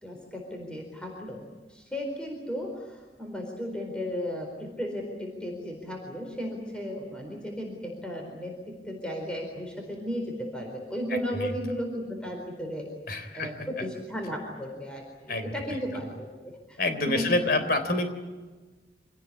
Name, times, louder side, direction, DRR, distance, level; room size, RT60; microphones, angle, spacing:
voice 1, 0.0-1.4 1.7-12.9 13.3-17.4, equal, 5° left, 1 dB, 4.3 m, -35 dB
voice 2, 13.1-13.5 15.3-15.5 16.8-18.1, left 2 dB, 55° left, 9 dB, 3.7 m, -27 dB
26.5 x 18.0 x 9.9 m, 1.3 s
head